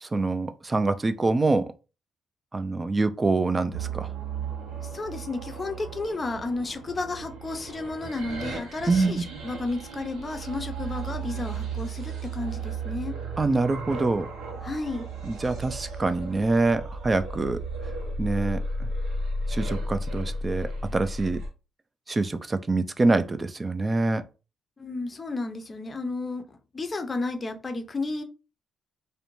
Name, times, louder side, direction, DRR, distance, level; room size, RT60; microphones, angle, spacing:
voice 1, 0.0-1.7 2.5-4.1 8.9-9.2 13.4-14.3 15.2-17.6 18.2-18.6 19.5-21.4 22.1-24.2, right 3 dB, 25° right, 0.3 m, -25 dB
sound 1, 3.7-21.5, right 2 dB, 85° right, 0.7 m, -34 dB
voice 2, 4.8-13.2 14.6-15.1 24.8-28.2, left 3 dB, 30° left, 0.5 m, -32 dB
2.5 x 2.1 x 2.9 m
cardioid pair, 90°, 0 cm